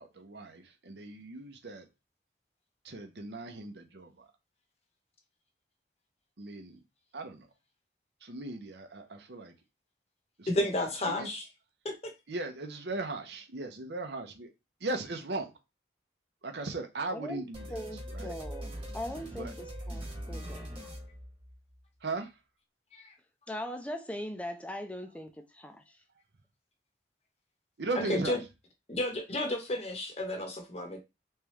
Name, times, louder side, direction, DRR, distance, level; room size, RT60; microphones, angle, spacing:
voice 1, 0.0-1.9 2.8-4.1 6.4-6.8 7.1-7.5 8.2-9.5 10.4-10.5 11.2-11.3 12.3-14.5 14.8-15.5 16.4-17.6 18.1-18.3 19.3-19.5 22.0-22.3 27.8-28.4, right 2 dB, 75° right, 0.8 m, -37 dB
voice 2, 10.5-11.5 11.8-11.9 22.9-23.1 27.9-28.4 28.9-31.0, left 1 dB, 35° left, 0.9 m, -32 dB
voice 3, 17.1-17.4 17.7-21.0 23.5-26.0, left 1 dB, 10° left, 0.5 m, -40 dB
sound 1, 17.5-21.8, equal, 30° right, 1.5 m, -42 dB
3.5 x 3.3 x 3.1 m
head